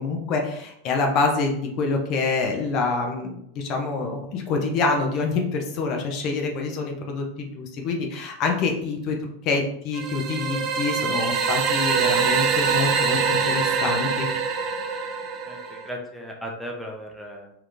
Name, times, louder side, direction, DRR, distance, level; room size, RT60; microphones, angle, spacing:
voice 1, 0.0-9.2 9.4-14.3, left 3 dB, 50° left, 3 dB, 0.6 m, -26 dB
sound 1, 9.9-15.9, right 5 dB, 45° right, 0.5 m, -24 dB
voice 2, 15.5-17.5, equal, ahead, -1 dB, 0.7 m, -36 dB
3.4 x 2.9 x 2.5 m, 0.75 s
hypercardioid pair, 100°, 0 cm